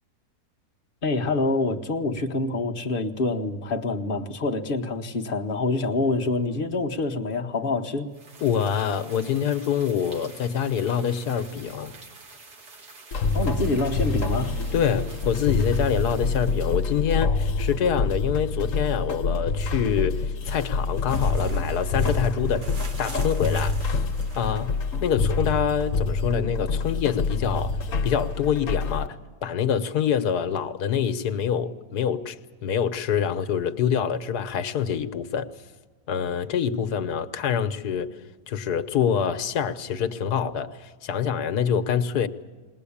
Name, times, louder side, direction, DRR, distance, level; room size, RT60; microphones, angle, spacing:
voice 1, 1.0-8.2 13.3-14.6, left 2 dB, 35° left, 1.2 m, -26 dB
sound 1, 8.1-17.1, right 3 dB, 80° right, 2.4 m, -48 dB
voice 2, 8.4-11.9 14.7-22.7 23.0-24.0 24.3-24.7 25.0-29.2 29.4-32.4 32.6-35.5 36.1-38.1 38.5-42.3, left 8 dB, 75° left, 1.4 m, -26 dB
sound 2, 13.1-29.1, left 4 dB, 55° left, 1.5 m, -26 dB
sound 3, 20.4-25.5, right 2 dB, 35° right, 1.0 m, -43 dB
21.0 x 19.0 x 8.6 m
omnidirectional pair, 1.7 m